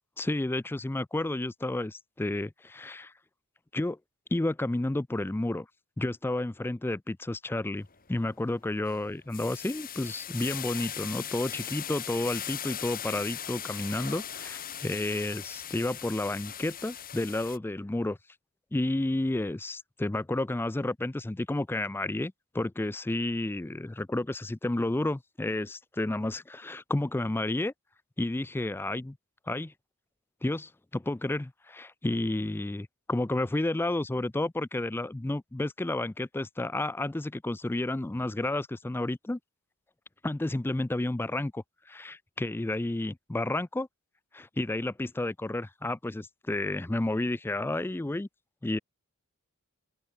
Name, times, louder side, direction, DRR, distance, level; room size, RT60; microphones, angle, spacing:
voice 1, 0.2-3.1 3.7-4.0 4.3-5.7 6.0-18.2 18.7-27.7 28.2-29.2 29.5-29.7 30.4-39.4 40.2-43.9 44.3-48.3 48.6-48.8, left 2 dB, 10° left, 0.3 m, -31 dB
sound 1, 7.8-8.1 8.5-17.6, left 10 dB, 40° left, 3.1 m, -39 dB
open air
head